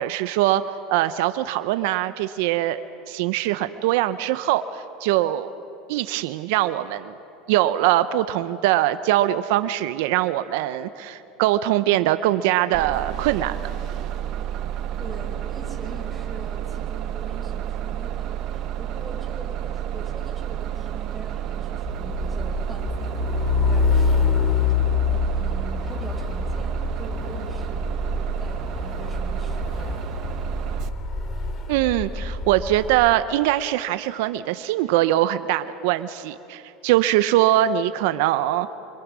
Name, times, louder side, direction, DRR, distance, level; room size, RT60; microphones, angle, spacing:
voice 1, 0.0-2.8 3.1-5.5 5.9-7.1 7.5-13.6 31.7-38.7, right 14 dB, 75° right, 11 dB, 0.7 m, -22 dB
Bus, 12.7-30.9, right 10 dB, 55° right, 1.2 m, -30 dB
voice 2, 15.0-24.7 25.1-28.0 28.4-30.0, right 1 dB, ahead, -1 dB, 6.0 m, -42 dB
Truck, 21.7-33.1, left 5 dB, 40° left, 2.4 m, -26 dB
26.5 x 25.0 x 6.2 m, 2.8 s
supercardioid pair, 105°, 0 cm